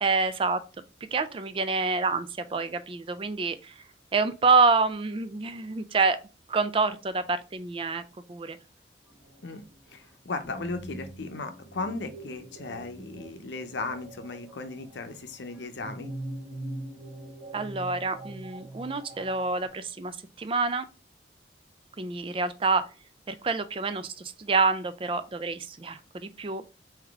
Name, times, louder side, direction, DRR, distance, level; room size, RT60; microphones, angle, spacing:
voice 1, 0.0-0.6 1.1-3.8 4.1-6.2 6.5-8.0 8.3-8.6 17.5-20.8 22.0-22.8 23.3-26.7, right 4 dB, 30° right, 0.3 m, -27 dB
sound 1, 9.1-19.7, right 1 dB, 10° right, 1.5 m, -43 dB
voice 2, 9.9-16.1, left 3 dB, 80° left, 0.7 m, -36 dB
3.8 x 2.8 x 3.4 m
head